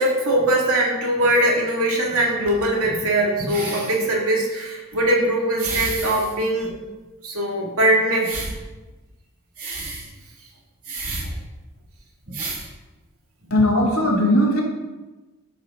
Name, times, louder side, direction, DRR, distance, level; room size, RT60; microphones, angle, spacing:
voice 1, 0.0-6.7 7.2-8.3 11.2-11.3, right 1 dB, 70° right, -1 dB, 2.3 m, -21 dB
sound 1, 1.3-1.4 2.5-2.9 3.4-4.1 4.9-5.0 5.6-6.3 6.6-6.7 8.2-8.6 9.6-10.1 10.8-11.3 11.9-12.0 12.2-12.7 13.6-13.7, right 2 dB, 40° right, 2.7 m, -31 dB
voice 2, 13.5-14.6, left 1 dB, 70° left, -1 dB, 2.9 m, -18 dB
13.5 x 6.7 x 3.9 m, 1.1 s
head